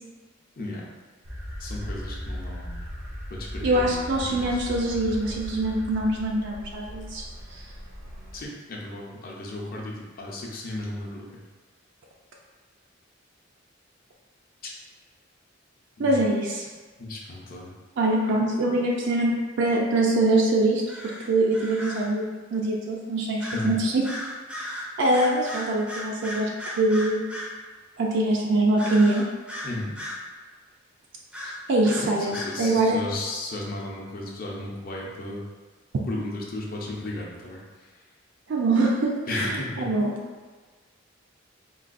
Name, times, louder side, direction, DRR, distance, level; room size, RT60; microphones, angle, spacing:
sound 1, 1.2-8.4, equal, 85° right, 1.4 m, -37 dB
voice 1, 1.6-2.8 3.3-4.7 8.3-11.3 16.0-16.1 17.0-17.7 23.5-23.7 29.6-29.9 31.4-31.5 32.0-35.4 36.1-37.6 39.3-39.9, left 2 dB, 50° left, -2 dB, 0.6 m, -34 dB
voice 2, 3.6-7.2 7.5-7.6 16.0-16.7 18.0-22.3 22.5-24.0 25.0-26.5 26.8-27.2 28.0-29.2 31.7-32.3 32.6-33.0 38.5-40.1, right 2 dB, 60° right, -1 dB, 0.4 m, -23 dB
sound 2, 20.9-22.1 23.4-23.7 24.0-27.6 28.8-30.3 31.3-32.6, left 1 dB, 5° right, 0.4 m, -36 dB
3.8 x 2.3 x 2.5 m, 1.4 s
head